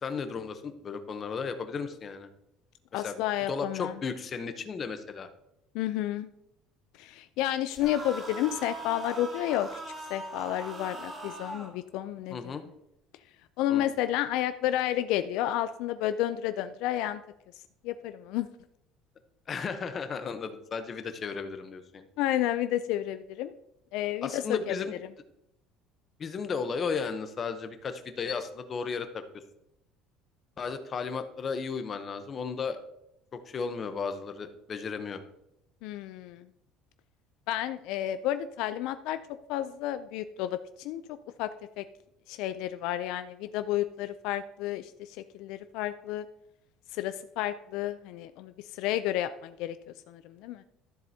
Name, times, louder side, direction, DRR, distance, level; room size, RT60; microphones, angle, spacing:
voice 1, 0.0-2.3 2.9-3.2 3.5-5.3 12.3-12.6 13.7-13.9 19.5-22.0 24.2-24.9 26.2-29.2 30.6-32.8 33.3-35.2, left 5 dB, 25° left, 9 dB, 0.7 m, -34 dB
voice 2, 2.9-3.9 5.7-6.3 7.0-9.7 10.1-12.6 13.6-17.2 17.8-18.5 22.2-23.5 23.9-24.7 35.8-36.5 37.5-39.2 39.5-41.0 41.4-41.5 41.8-41.9 42.3-46.3 46.9-49.8 50.1-50.6, left 12 dB, 65° left, 11 dB, 0.3 m, -31 dB
sound 1, 7.7-11.7, right 1 dB, 15° right, 1.5 m, -41 dB
12.5 x 7.5 x 2.7 m, 0.82 s
cardioid pair, 170°, 0 cm